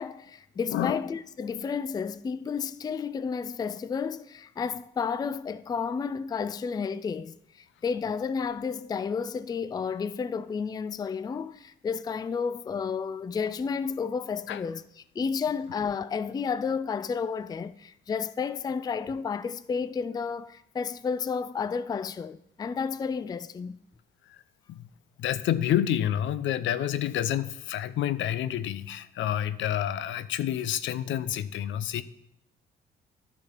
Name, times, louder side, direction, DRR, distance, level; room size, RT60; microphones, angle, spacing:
voice 1, 0.0-14.8 15.2-23.8, left 6 dB, 20° left, 0.3 m, -31 dB
voice 2, 25.2-32.0, left 11 dB, 75° left, 0.5 m, -28 dB
10.5 x 4.2 x 5.8 m
cardioid pair, 90°, 20 cm